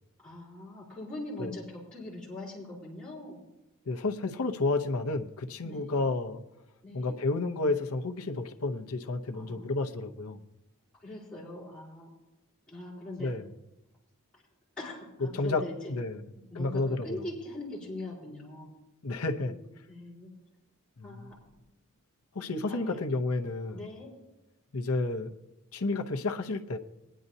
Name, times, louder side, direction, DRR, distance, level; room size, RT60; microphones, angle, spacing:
voice 1, 0.2-3.4 5.6-6.0 6.8-7.1 9.3-9.7 11.0-12.1 12.7-13.3 14.8-15.9 16.5-18.7 19.5-19.6 19.9-20.3 21.0-21.3 22.7-23.0 23.7-24.1, left 1 dB, 5° left, -10 dB, 4.0 m, -41 dB
voice 2, 3.9-6.4 6.9-10.5 13.2-13.4 15.3-15.6 15.9-16.2 16.5-17.2 19.0-19.5 21.0-21.3 22.3-23.8 24.7-25.3 25.7-26.8, left 3 dB, 75° left, 4 dB, 0.8 m, -31 dB
21.0 x 10.0 x 2.7 m, 0.93 s
head